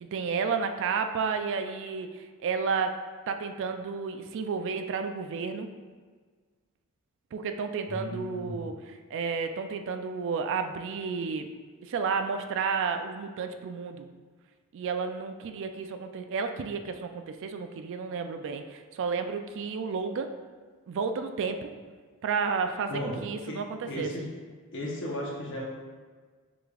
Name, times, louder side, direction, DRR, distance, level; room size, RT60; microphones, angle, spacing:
voice 1, 0.0-3.0 3.3-5.7 7.3-11.5 11.8-14.1 14.7-20.3 20.9-21.7 22.2-24.1, right 5 dB, 60° right, 7 dB, 0.3 m, -31 dB
voice 2, 7.9-8.7 22.9-23.1 23.5-23.6 23.9-24.3 24.7-25.7, equal, 60° left, -3 dB, 0.9 m, -35 dB
4.9 x 3.5 x 2.3 m, 1.5 s
head